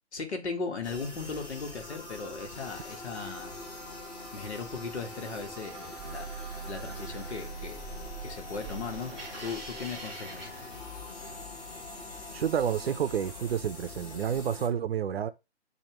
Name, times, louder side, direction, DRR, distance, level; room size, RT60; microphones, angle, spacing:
voice 1, 0.1-3.6 4.3-7.9 8.2-10.5, left 4 dB, 70° left, 1.5 m, -38 dB
sound 1, 0.8-14.7, left 2 dB, 35° left, 2.6 m, -44 dB
Drill, 2.5-13.5, left 1 dB, 20° left, 3.1 m, -50 dB
sound 2, 6.0-11.3, right 4 dB, ahead, 0.5 m, -42 dB
voice 2, 12.3-15.3, right 8 dB, 60° right, 0.6 m, -29 dB
6.5 x 2.8 x 3.0 m
hypercardioid pair, 150°, 34 cm